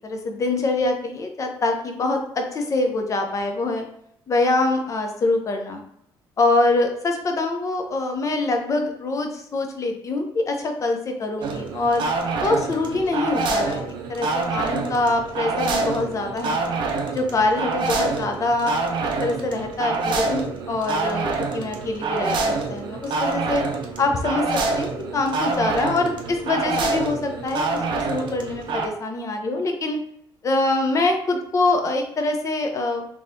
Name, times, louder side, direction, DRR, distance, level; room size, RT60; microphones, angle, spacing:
voice 1, 0.0-3.9 4.3-5.8 6.4-12.0 12.4-13.8 14.1-16.7 17.1-18.8 19.2-23.6 24.0-30.0 30.4-33.1, left 2 dB, 35° left, 4 dB, 0.6 m, -24 dB
sound 1, 11.4-28.9, right 3 dB, 60° right, 0.6 m, -26 dB
3.6 x 3.0 x 2.7 m, 0.70 s
cardioid pair, 120°, 9 cm